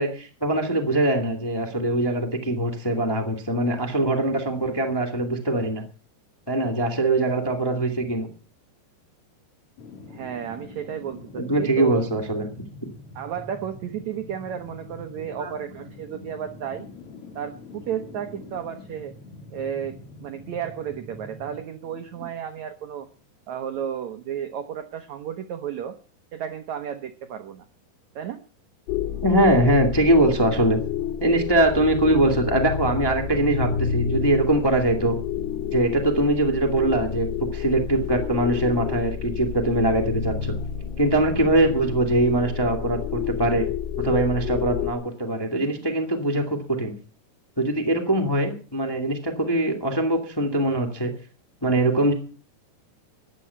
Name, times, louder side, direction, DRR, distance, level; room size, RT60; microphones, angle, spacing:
voice 1, 0.0-5.8 6.5-8.3 11.3-12.5 15.4-15.5 29.2-30.8 31.2-35.2 35.7-40.5 41.0-43.7 44.0-46.9 47.6-51.1 51.6-52.1, right 1 dB, 10° left, 3 dB, 1.1 m, -22 dB
sound 1, 9.8-22.8 23.2-23.3, left 2 dB, 40° left, 2.8 m, -44 dB
voice 2, 10.1-12.0 13.1-16.9 17.3-19.1 19.5-23.1 23.5-26.0 26.3-27.6 28.1-28.4, right 9 dB, 80° right, 8 dB, 1.6 m, -33 dB
sound 2, 28.9-44.9, left 9 dB, 85° left, 3.5 m, -29 dB
14.0 x 10.0 x 6.9 m, 0.40 s
omnidirectional pair, 4.7 m